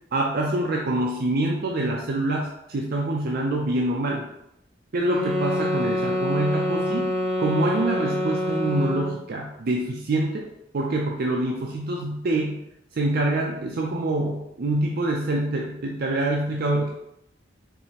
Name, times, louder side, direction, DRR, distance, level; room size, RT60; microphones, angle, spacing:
voice 1, 0.1-4.3 4.9-7.1 7.4-10.5 10.7-12.6 12.9-16.9, right 2 dB, 55° right, 0 dB, 0.5 m, -25 dB
sound 1, 5.0-9.2, left 1 dB, 5° right, 0.6 m, -26 dB
4.6 x 3.2 x 2.9 m, 0.80 s
head